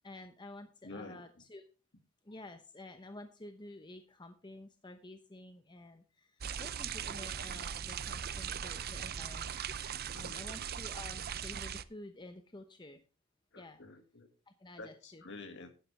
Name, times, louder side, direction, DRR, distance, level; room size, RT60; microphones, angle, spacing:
voice 1, 0.0-1.6 2.2-9.6 10.2-13.0 13.6-13.8 14.5-15.2, left 2 dB, 20° left, 7 dB, 0.9 m, -51 dB
voice 2, 0.8-1.4 9.9-10.4 13.5-14.3 14.8-15.7, left 2 dB, 55° left, 6 dB, 2.1 m, -49 dB
sound 1, 6.4-11.8, right 8 dB, 45° right, 0.6 m, -39 dB
11.5 x 11.0 x 3.3 m, 0.35 s
head